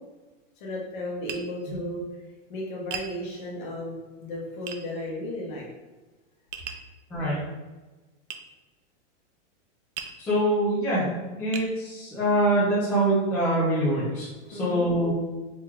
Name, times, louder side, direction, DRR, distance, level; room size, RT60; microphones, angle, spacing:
voice 1, 0.6-2.2 2.5-5.6 14.5-14.9, left 1 dB, 40° left, -4 dB, 1.2 m, -34 dB
Tap, 1.3-1.5 2.9-3.1 4.7-4.8 6.5-6.9 8.3-8.4 10.0-10.2 10.9-11.0 11.5-11.7, right 7 dB, 75° right, 0.6 m, -36 dB
voice 2, 10.2-11.1 11.4-15.1, right 1 dB, 5° left, -12 dB, 0.4 m, -24 dB
4.5 x 3.5 x 2.3 m, 1.2 s
supercardioid pair, 170°, 36 cm